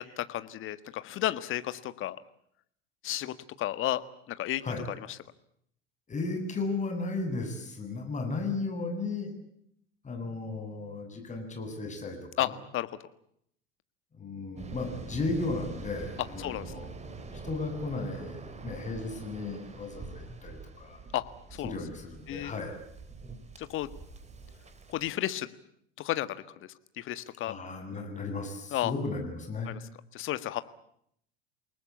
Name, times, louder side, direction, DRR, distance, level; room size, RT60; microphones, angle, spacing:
voice 1, 0.0-2.2 3.0-4.0 4.3-4.6 12.4-12.9 16.4-16.6 21.1-21.2 21.5-21.7 22.3-22.5 23.6-23.9 24.9-25.5 26.0-26.4 27.0-27.5 28.7-28.9 29.7-29.8 30.1-30.6, left 14 dB, 40° left, 13 dB, 1.7 m, -32 dB
voice 2, 6.1-9.3 10.0-12.6 14.1-16.9 17.4-21.0 21.6-22.8 27.4-29.8, left 3 dB, 25° left, 5 dB, 8.0 m, -35 dB
Waves surf, 14.6-25.1, right 3 dB, 20° right, 3.9 m, -45 dB
28.5 x 19.5 x 8.6 m, 0.71 s
figure-of-eight pair, 80°, 31 cm